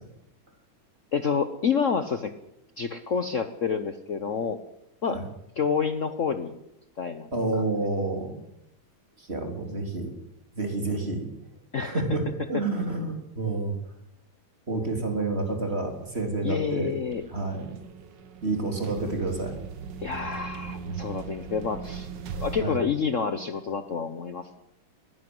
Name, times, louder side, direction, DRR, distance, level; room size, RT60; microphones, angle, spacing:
voice 1, 1.1-2.3 2.8-4.6 5.0-5.2 5.6-6.6 7.0-7.3 7.5-7.6 11.7-12.0 16.4-17.2 20.0-24.4, left 6 dB, 45° left, 9 dB, 1.2 m, -28 dB
voice 2, 7.3-8.4 9.2-10.1 10.5-11.3 11.8-12.2 12.5-13.8 14.7-17.0 17.3-17.8 18.4-19.6 20.8-21.0 22.6-22.8, right 3 dB, 30° right, 3 dB, 3.8 m, -29 dB
sound 1, 15.6-22.6, right 6 dB, 65° right, 1.9 m, -40 dB
20.5 x 16.5 x 7.9 m, 0.81 s
omnidirectional pair, 2.1 m